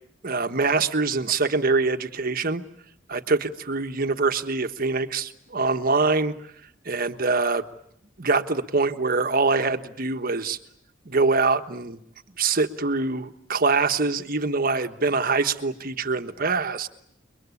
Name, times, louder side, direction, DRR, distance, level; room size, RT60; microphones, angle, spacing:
voice 1, 0.2-2.6 3.1-6.4 6.8-7.6 8.2-10.6 11.0-12.0 12.4-16.9, right 3 dB, 50° right, 8 dB, 1.3 m, -24 dB
29.0 x 23.0 x 8.4 m, 0.72 s
head